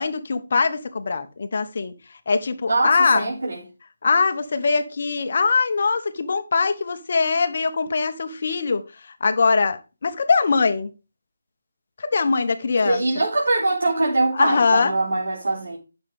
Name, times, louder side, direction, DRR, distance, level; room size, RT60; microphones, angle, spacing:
voice 1, 0.0-1.9 2.3-3.2 4.0-10.9 12.0-13.0 14.3-14.9, left 4 dB, 50° left, 1.2 m, -22 dB
voice 2, 2.7-3.6 12.8-15.8, right 2 dB, 75° right, 3.3 m, -22 dB
9.9 x 6.7 x 3.7 m
figure-of-eight pair, 160°, 0 cm